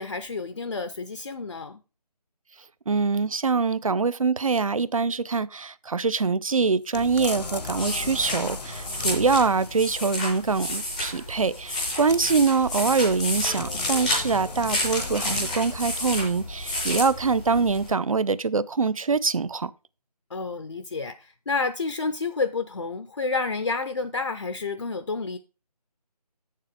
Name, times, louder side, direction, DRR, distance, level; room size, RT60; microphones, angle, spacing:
voice 1, 0.0-1.8 20.3-25.4, left 4 dB, 45° left, 0.5 m, -30 dB
voice 2, 2.9-19.7, right 4 dB, 55° right, 0.5 m, -24 dB
sound 1, 6.9-9.9 11.9-16.1 16.7-16.8, left 3 dB, 80° left, 1.0 m, -37 dB
sound 2, 6.9-17.9, left 1 dB, ahead, 0.5 m, -31 dB
7.2 x 6.7 x 4.5 m
figure-of-eight pair, 165°, 21 cm